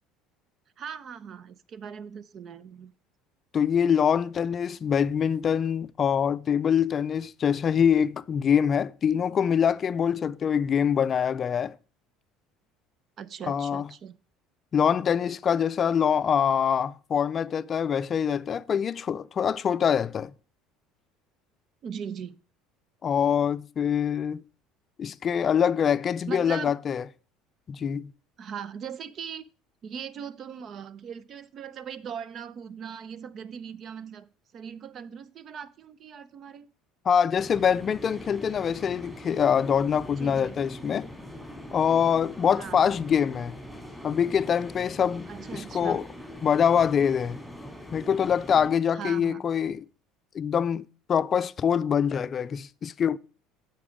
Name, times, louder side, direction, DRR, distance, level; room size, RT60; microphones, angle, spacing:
voice 1, 0.8-2.9 13.2-14.2 21.8-22.4 26.3-26.7 28.4-29.4 29.8-36.7 40.1-40.6 42.5-42.9 45.3-46.0 48.9-49.4, right 7 dB, 50° right, 0.6 m, -40 dB
voice 2, 3.5-11.8 13.5-13.8 14.7-20.3 23.0-24.4 25.0-27.0 27.7-28.1 37.1-41.1 41.7-43.6 44.0-46.0 46.4-47.4 47.9-49.8 50.3-53.2, left 8 dB, 40° left, 0.3 m, -24 dB
sound 1, 37.4-48.7, equal, 5° right, 2.6 m, -43 dB
8.4 x 5.9 x 4.9 m
supercardioid pair, 90°, 0 cm